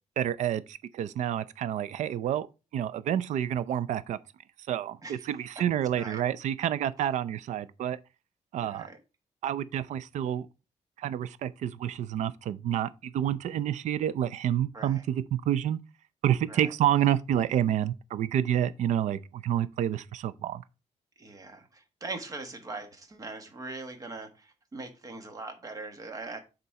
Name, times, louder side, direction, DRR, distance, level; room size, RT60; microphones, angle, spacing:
voice 1, 0.2-2.5 2.7-4.2 4.7-8.0 8.5-8.9 9.4-10.5 11.0-15.8 16.2-20.6, right 10 dB, 75° right, 0.5 m, -29 dB
voice 2, 8.6-9.0 14.7-15.0 16.5-16.7 21.2-26.4, right 3 dB, 30° right, 1.3 m, -41 dB
7.0 x 3.9 x 4.7 m
cardioid pair, 155°, 12 cm